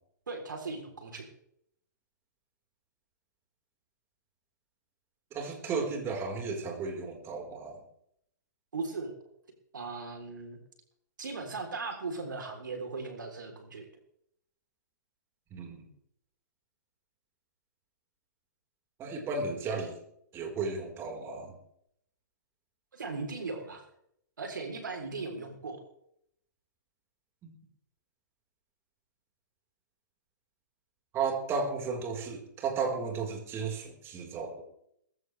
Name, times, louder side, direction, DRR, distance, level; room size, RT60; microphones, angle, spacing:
voice 1, 0.3-1.3 8.7-9.2 9.7-10.6 11.2-13.9 22.9-23.8 24.4-25.8, right 3 dB, 75° right, 4 dB, 3.6 m, -38 dB
voice 2, 5.3-7.8 15.5-15.8 19.0-20.0 20.3-21.6 27.4-27.5 31.1-34.6, right 4 dB, 25° right, 2 dB, 4.5 m, -34 dB
20.0 x 15.5 x 3.4 m, 0.72 s
hypercardioid pair, 125°, 10 cm